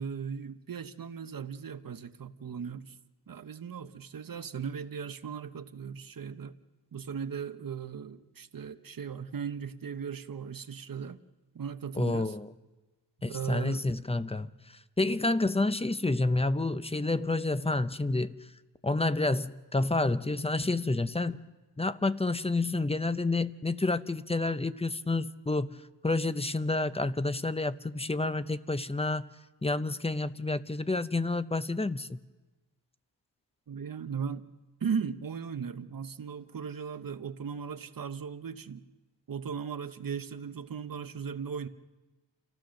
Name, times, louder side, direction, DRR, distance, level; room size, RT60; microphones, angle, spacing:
voice 1, 0.0-3.0 3.3-6.6 6.9-11.2 11.5-12.4 13.2-13.8 33.7-34.4 34.8-38.8 39.3-41.7, right 6 dB, 50° right, 10 dB, 1.0 m, -37 dB
voice 2, 12.0-12.5 13.2-18.4 18.8-21.4 21.8-25.8 26.0-29.3 29.6-32.2, left 2 dB, 15° left, 13 dB, 0.6 m, -29 dB
29.0 x 15.0 x 6.4 m, 1.2 s
wide cardioid pair, 90°, 43 cm